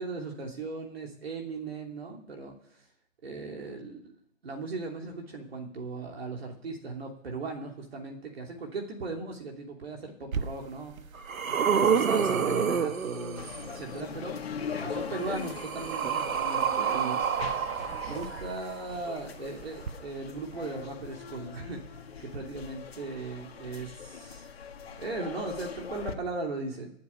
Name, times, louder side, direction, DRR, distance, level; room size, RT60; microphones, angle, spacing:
voice 1, 0.0-2.9 3.2-4.1 4.4-11.0 11.6-14.4 14.8-17.2 18.1-21.8 22.2-24.5 25.0-26.9, right 3 dB, 50° right, 0 dB, 2.9 m, -38 dB
sound 1, 10.3-10.4 11.0-13.7 14.9-18.8 19.8-19.9, right 7 dB, 85° right, 1.3 m, -28 dB
sound 2, 13.4-26.1, left 6 dB, 50° left, 1.7 m, -41 dB
12.0 x 7.9 x 10.0 m, 0.78 s
hypercardioid pair, 180°, 40 cm